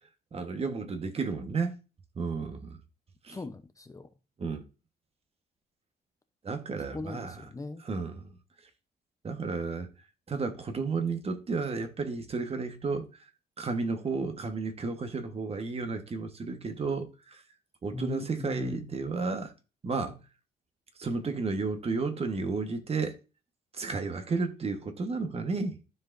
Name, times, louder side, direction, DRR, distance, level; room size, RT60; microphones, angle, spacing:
voice 1, 0.3-1.8 2.1-2.8 3.2-3.4 4.4-4.6 6.4-7.4 7.8-8.3 9.2-9.9 10.3-13.1 13.6-17.4 17.8-19.5 19.8-20.2 21.0-23.2 23.8-25.8, right 4 dB, 35° right, 1.3 m, -32 dB
voice 2, 3.3-4.1 6.8-7.8 17.9-18.8, left 2 dB, 20° left, 0.7 m, -38 dB
13.5 x 4.9 x 2.6 m
cardioid pair, 110°, 17 cm